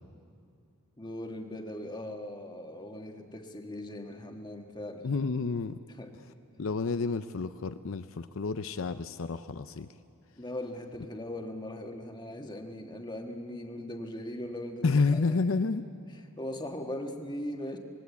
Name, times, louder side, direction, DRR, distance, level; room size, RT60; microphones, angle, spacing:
voice 1, 1.0-5.1 6.0-6.4 10.4-14.9 15.1-15.3 16.4-17.8, left 1 dB, 20° left, 4 dB, 1.5 m, -39 dB
voice 2, 5.0-5.8 6.6-9.9 14.8-15.9, left 4 dB, 70° left, 11 dB, 0.6 m, -29 dB
25.5 x 21.0 x 8.3 m, 2.4 s
head